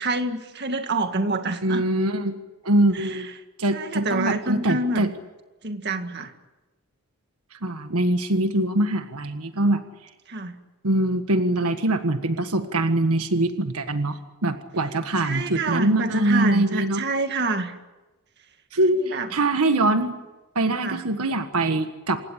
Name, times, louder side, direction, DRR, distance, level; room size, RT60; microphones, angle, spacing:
voice 1, 0.0-1.8 2.9-3.3 3.7-5.0 5.6-6.3 10.3-10.6 15.2-17.7 19.0-19.3 20.8-21.0, right 2 dB, 50° right, 6 dB, 2.0 m, -27 dB
voice 2, 1.6-2.4 2.6-3.3 3.6-5.1 7.6-9.8 10.8-17.0 18.7-20.1 20.5-22.2, right 1 dB, 80° right, 8 dB, 1.6 m, -23 dB
28.0 x 16.5 x 10.0 m, 1.1 s
head